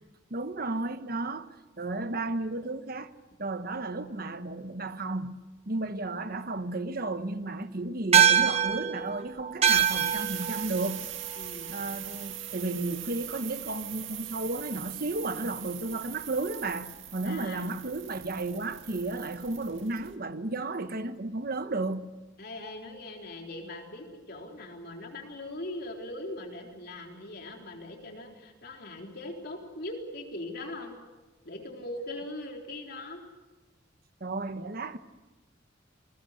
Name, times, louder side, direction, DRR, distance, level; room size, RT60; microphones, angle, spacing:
voice 1, 0.3-1.5 1.8-3.1 3.4-11.1 11.7-22.1 34.2-35.0, right 2 dB, 50° right, 1.2 m, -33 dB
sound 1, 8.1-12.8, right 9 dB, 35° right, 1.5 m, -26 dB
sound 2, 9.6-20.2, right 12 dB, 80° right, 2.0 m, -41 dB
voice 2, 11.4-11.8 17.2-17.7 22.4-31.0 31.4-33.2, left 1 dB, 55° left, 3.9 m, -40 dB
28.0 x 21.5 x 6.6 m
head